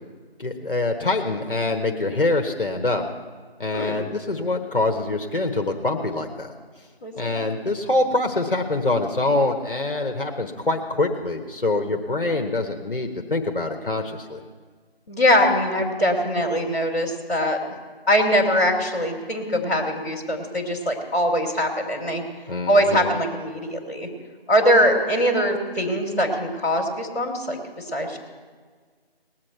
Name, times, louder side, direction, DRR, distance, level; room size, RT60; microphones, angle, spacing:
voice 1, 0.4-3.0 3.6-6.5 7.2-14.4 22.5-23.1, left 2 dB, 60° left, 3 dB, 1.3 m, -25 dB
voice 2, 7.0-7.3 15.1-17.6 18.1-22.2 22.7-24.1 24.5-27.6 27.9-28.2, equal, 15° left, -9 dB, 1.8 m, -22 dB
20.0 x 7.7 x 4.5 m, 1.5 s
figure-of-eight pair, 165°, 31 cm